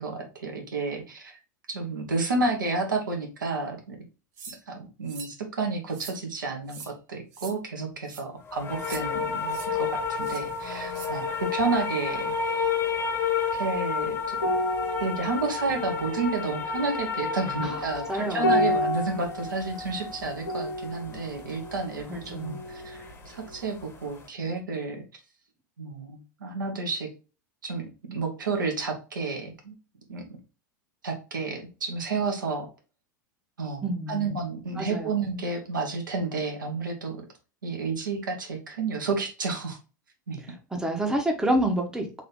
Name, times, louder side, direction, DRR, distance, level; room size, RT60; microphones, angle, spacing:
voice 1, 0.0-1.4 1.7-4.0 4.5-12.3 13.6-14.4 15.0-25.0 25.8-27.1 27.6-29.7 30.1-30.2 31.0-32.7 33.6-37.2 37.6-39.8 40.3-40.4, right 3 dB, 75° right, 1 dB, 1.2 m, -31 dB
sound 1, 4.4-4.6 5.1-5.3 5.9-6.2 6.7-6.9 7.3-7.5 8.0-8.2 8.8-9.0 9.5-9.7 10.2-10.4 10.9-11.1, right 5 dB, 55° right, 1.1 m, -42 dB
sound 2, 8.5-23.4 23.8-24.2, left 5 dB, 25° left, 1.0 m, -31 dB
sound 3, 14.3-23.1 23.4-23.6, left 1 dB, 80° left, 1.0 m, -31 dB
voice 2, 18.1-18.7 22.3-22.6 33.8-34.3 34.8-35.3 40.7-42.2, right 1 dB, 5° right, 3 dB, 0.9 m, -28 dB
3.8 x 2.8 x 3.6 m, 0.32 s
figure-of-eight pair, 90°, 11 cm